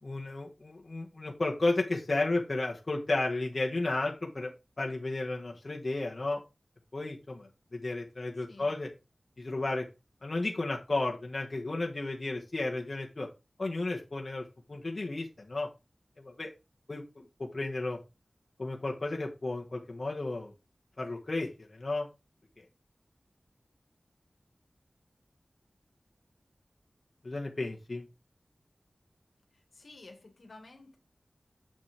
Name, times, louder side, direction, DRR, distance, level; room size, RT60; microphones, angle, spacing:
voice 1, 0.0-4.5 4.8-6.4 6.9-8.9 9.4-9.8 10.2-13.3 13.6-15.7 16.2-16.5 16.9-18.0 18.6-20.5 21.0-22.1 22.6-22.7 27.2-28.0, left 2 dB, 50° left, 1.5 m, -33 dB
voice 2, 8.4-8.7 29.5-31.0, left 2 dB, 80° left, 1.9 m, -53 dB
7.6 x 7.2 x 3.5 m
wide cardioid pair, 70°, 0 cm